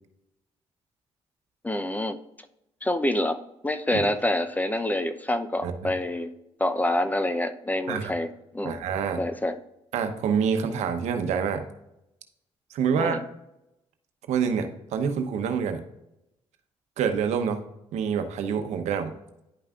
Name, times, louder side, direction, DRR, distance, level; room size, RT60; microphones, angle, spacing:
voice 1, 1.6-2.2 2.8-3.4 3.6-6.3 6.6-8.8 9.2-9.6 12.9-13.2, left 1 dB, 15° left, 10 dB, 0.7 m, -27 dB
voice 2, 8.6-9.2 9.9-11.6 12.7-13.2 14.3-15.8 17.0-17.6 17.9-19.1, right 7 dB, 75° right, 7 dB, 0.9 m, -27 dB
10.5 x 5.4 x 2.5 m, 0.87 s
supercardioid pair, 65°, 12 cm